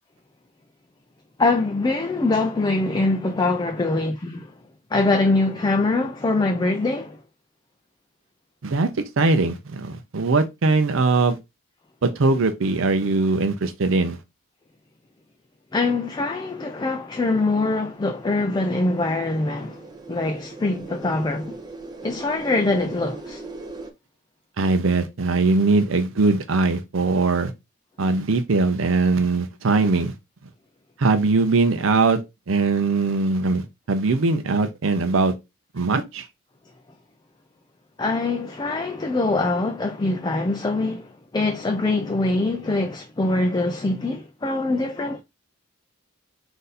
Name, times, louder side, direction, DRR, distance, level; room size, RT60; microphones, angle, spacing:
voice 1, 1.4-4.5 4.9-7.2 15.7-19.8 20.1-21.6 22.0-23.4 38.0-45.2, left 2 dB, 20° left, 0.4 m, -23 dB
voice 2, 8.6-11.4 12.0-14.2 24.6-27.5 28.0-30.1 31.0-32.2 32.5-35.3 35.7-36.2, right 3 dB, 75° right, 0.6 m, -21 dB
sound 1, 17.9-23.9, right 3 dB, 20° right, 0.6 m, -40 dB
3.9 x 2.6 x 4.0 m
head